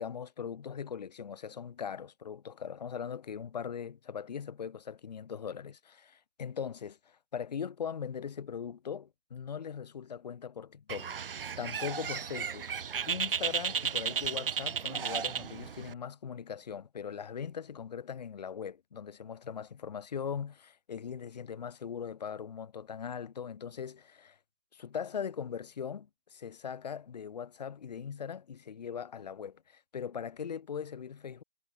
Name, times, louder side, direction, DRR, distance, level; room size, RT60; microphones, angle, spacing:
voice 1, 0.0-12.7 13.1-24.4 24.7-31.4, left 7 dB, 40° left, 0.8 m, -40 dB
Bird, 10.9-15.9, right 7 dB, 55° right, 0.5 m, -34 dB
figure-of-eight pair, 145°, 33 cm